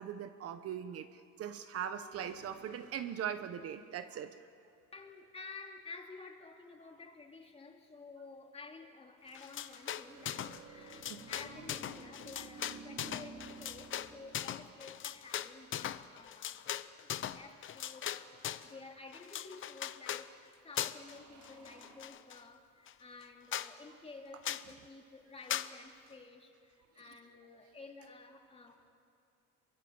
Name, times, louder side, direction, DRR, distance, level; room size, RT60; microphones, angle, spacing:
voice 1, 0.0-4.5 11.1-11.2, right 9 dB, 50° right, 10 dB, 1.0 m, -40 dB
sound 1, 2.1-4.2 9.3-15.6 21.0-22.0, right 4 dB, 75° right, 4.8 m, -54 dB
voice 2, 4.9-16.6 17.0-28.9, left 3 dB, 20° left, 3 dB, 2.5 m, -52 dB
sound 2, 9.3-10.6 10.9-18.7 19.1-20.3 20.8-21.2 21.4-22.4 22.9-23.0 23.2-23.3 23.5-23.7 24.4-24.7 25.5-25.7, left 11 dB, 40° left, 0.8 m, -40 dB
28.0 x 23.5 x 7.9 m, 2.5 s
cardioid pair, 145°, 31 cm